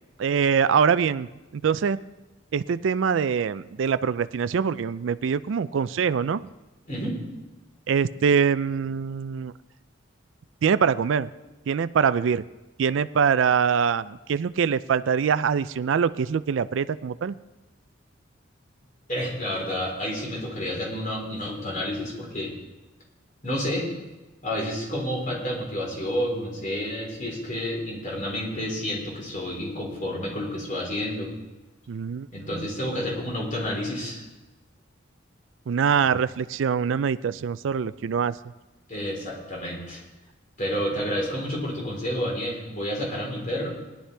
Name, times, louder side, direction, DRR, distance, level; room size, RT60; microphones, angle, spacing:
voice 1, 0.2-1.3 1.5-2.0 2.5-6.5 7.9-9.5 10.6-11.3 11.7-12.4 12.8-17.3 31.9-32.3 32.5-32.7 35.7-38.4, right 6 dB, 75° right, 15 dB, 0.4 m, -24 dB
voice 2, 6.9-7.2 19.1-22.5 23.4-23.9 24.4-31.3 32.3-34.2 35.9-36.1 38.9-40.0 40.6-43.7, equal, 45° left, -2 dB, 4.0 m, -30 dB
18.5 x 11.5 x 3.4 m, 1.1 s
head